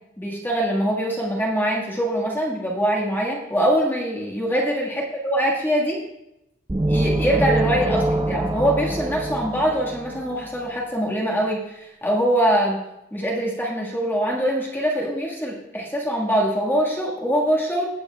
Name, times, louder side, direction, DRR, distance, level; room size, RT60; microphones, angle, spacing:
voice 1, 0.2-6.0 6.9-12.8 13.1-17.9, equal, 10° left, -4 dB, 1.7 m, -23 dB
sound 1, 6.7-10.5, right 1 dB, 20° right, 0.5 m, -24 dB
17.5 x 8.4 x 2.3 m, 0.86 s
head